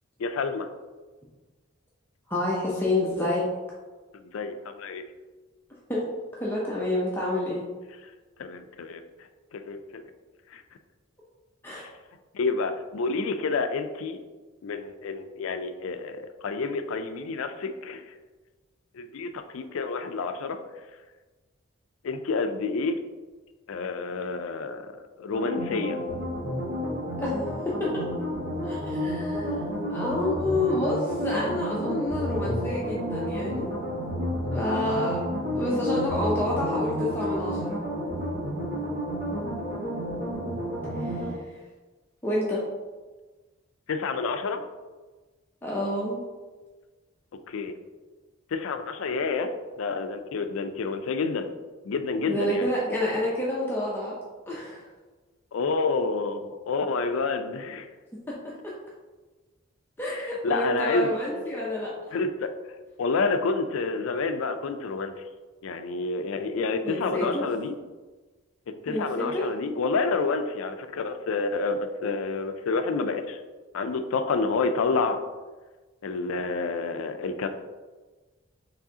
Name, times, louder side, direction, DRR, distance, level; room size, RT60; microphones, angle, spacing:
voice 1, 0.2-0.7 4.3-5.0 8.4-9.0 9.5-10.0 10.5-10.6 12.3-14.2 14.6-18.0 19.0-20.6 22.0-23.0 23.7-24.9 25.2-26.0 43.9-44.6 47.5-47.7 48.5-49.5 49.8-51.5 51.9-52.7 55.5-57.9 60.4-61.1 62.1-62.5 63.0-65.1 65.6-67.8 68.9-73.4 73.7-75.2 76.0-77.5, left 4 dB, 80° left, 8 dB, 0.4 m, -28 dB
voice 2, 2.3-3.5 5.9-6.0 6.4-7.7 11.6-11.9 27.2-27.3 27.6-28.0 28.6-29.5 29.9-33.7 34.5-35.2 35.5-37.8 40.9-41.2 42.2-42.6 45.6-46.2 52.3-54.1 54.5-54.8 58.6-58.7 60.0-61.9 66.8-67.4 68.9-69.5, left 1 dB, 10° left, -6 dB, 0.5 m, -28 dB
sound 1, 25.3-41.3, equal, 45° right, 1.4 m, -31 dB
4.6 x 3.4 x 2.8 m, 1.3 s
head